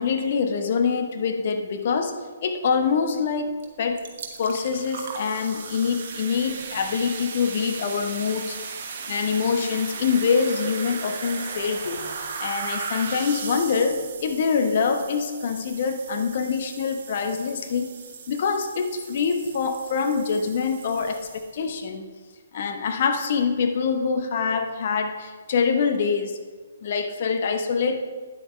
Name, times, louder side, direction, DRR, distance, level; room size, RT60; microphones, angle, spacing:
voice 1, 0.0-2.1 2.4-4.0 4.4-8.6 9.1-12.0 12.4-17.9 18.3-21.3 21.5-22.1 22.5-26.4 26.8-28.0, left 5 dB, 50° left, 6 dB, 0.9 m, -25 dB
sound 1, 3.6-3.7 4.0-21.7, right 5 dB, 50° right, 1.2 m, -37 dB
9.7 x 8.0 x 3.3 m, 1.5 s
figure-of-eight pair, 135°, 0 cm